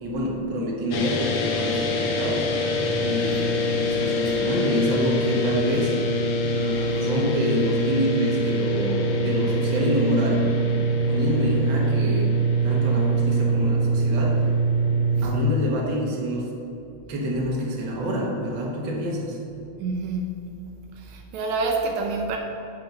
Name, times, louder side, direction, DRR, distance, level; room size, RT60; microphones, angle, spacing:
voice 1, 0.0-2.5 3.0-5.9 6.6-10.6 11.1-12.4 12.6-14.4 15.2-16.6 17.1-19.4, equal, 50° right, -2 dB, 1.8 m, -27 dB
sound 1, 0.9-15.3, right 1 dB, 80° left, 1.0 m, -23 dB
voice 2, 19.8-20.4 21.0-22.4, right 3 dB, 80° right, 2 dB, 2.1 m, -27 dB
7.5 x 5.8 x 6.5 m, 2.8 s
omnidirectional pair, 3.3 m